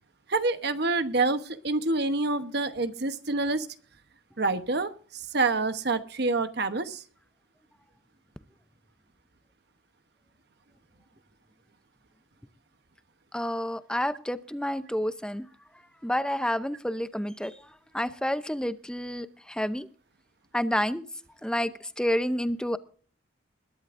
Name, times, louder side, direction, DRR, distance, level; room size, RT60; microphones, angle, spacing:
voice 1, 0.3-3.7 4.4-7.0, right 3 dB, 55° right, 10 dB, 1.0 m, -27 dB
voice 2, 13.3-15.5 16.0-17.5 17.9-19.9 20.5-21.0 21.4-21.7 22.0-22.8, equal, 5° left, 12 dB, 0.6 m, -29 dB
21.5 x 12.0 x 2.6 m, 0.42 s
head